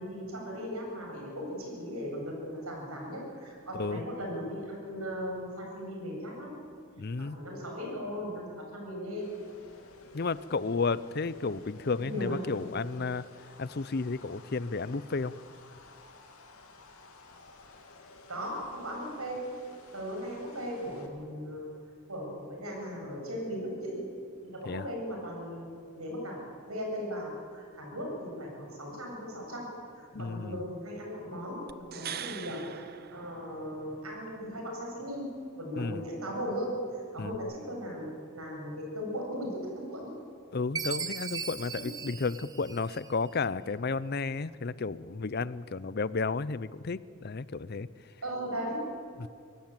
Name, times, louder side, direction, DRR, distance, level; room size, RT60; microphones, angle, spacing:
voice 1, 0.0-6.6 7.2-9.3 12.0-12.4 18.3-19.4 19.9-21.7 22.1-24.0 24.4-25.7 25.9-26.4 26.7-35.3 35.6-40.1 41.7-41.8 48.2-48.8, equal, 80° right, 0 dB, 7.9 m, -37 dB
voice 2, 7.0-7.4 10.1-13.2 13.6-15.3 24.7-24.8 30.1-30.6 35.8-36.0 37.2-37.4 40.5-47.9 49.2-49.3, left 4 dB, 45° left, 17 dB, 0.6 m, -32 dB
sound 1, 9.1-21.1, left 2 dB, 85° left, 3.0 m, -53 dB
sound 2, 31.7-34.0 37.3-37.4, right 9 dB, 45° right, 0.7 m, -42 dB
Chime, 40.8-43.3, right 6 dB, 15° right, 0.9 m, -38 dB
24.0 x 17.5 x 9.0 m, 2.3 s
head